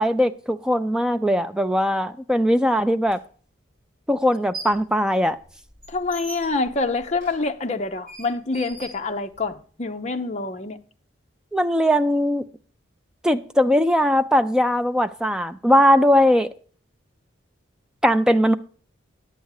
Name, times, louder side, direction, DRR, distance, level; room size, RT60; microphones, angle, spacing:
voice 1, 0.0-3.2 4.1-5.4 11.5-12.4 13.2-16.5 18.0-18.5, equal, 5° right, 0.4 m, -19 dB
sound 1, 3.1-3.2 4.2-4.9 5.3-9.6, right 3 dB, 45° right, 4.4 m, -41 dB
voice 2, 5.9-10.8, left 3 dB, 35° left, 0.6 m, -26 dB
10.0 x 8.2 x 4.8 m
head